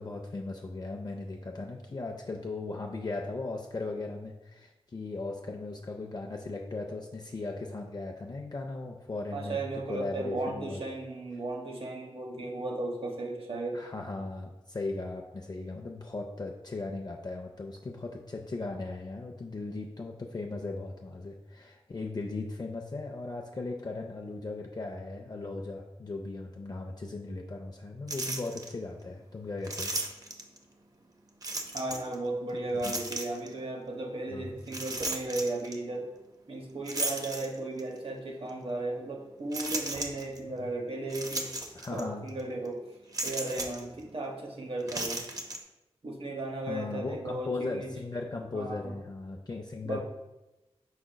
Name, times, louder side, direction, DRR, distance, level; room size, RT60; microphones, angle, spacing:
voice 1, 0.0-10.8 13.7-29.9 32.8-32.9 34.3-34.5 40.5-40.6 41.7-42.3 46.7-50.0, left 3 dB, 40° left, 1 dB, 0.4 m, -37 dB
voice 2, 9.3-13.9 31.7-36.1 36.5-41.5 41.9-42.9 43.2-45.2 46.0-47.9 48.5-48.9 49.8-50.0, right 2 dB, 60° right, 1 dB, 1.0 m, -35 dB
sound 1, 28.1-28.7 29.6-30.6 31.4-32.1 32.8-33.5 34.7-35.8 36.9-37.9 38.5-38.6 39.5-40.4 41.1-42.0 42.3-42.4 43.1-43.8 44.8-45.6, right 2 dB, 35° right, 0.6 m, -35 dB
4.9 x 4.8 x 2.2 m, 0.99 s
cardioid pair, 60°, 11 cm